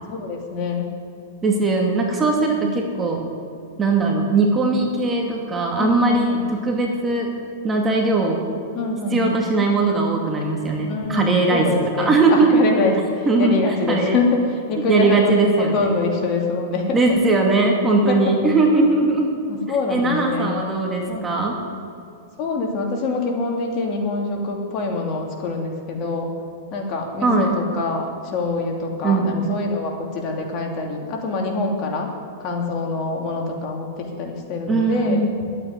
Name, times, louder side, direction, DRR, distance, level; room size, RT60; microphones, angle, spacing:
voice 1, 0.1-0.9 2.5-2.7 5.8-6.4 8.7-9.4 10.9-17.0 18.1-18.3 19.5-20.6 21.1-21.3 22.4-26.3 26.7-32.1 32.4-35.2, left 3 dB, 40° left, 1 dB, 2.8 m, -25 dB
voice 2, 1.4-3.2 3.8-7.3 7.6-8.4 9.1-11.7 12.0-12.6 13.3-14.2 14.9-16.0 16.9-19.3 19.7-21.6 27.2-27.6 29.0-29.5 34.7-35.4, right 3 dB, 15° right, 1 dB, 2.4 m, -19 dB
12.0 x 9.1 x 9.8 m, 2.6 s
hypercardioid pair, 130°, 0 cm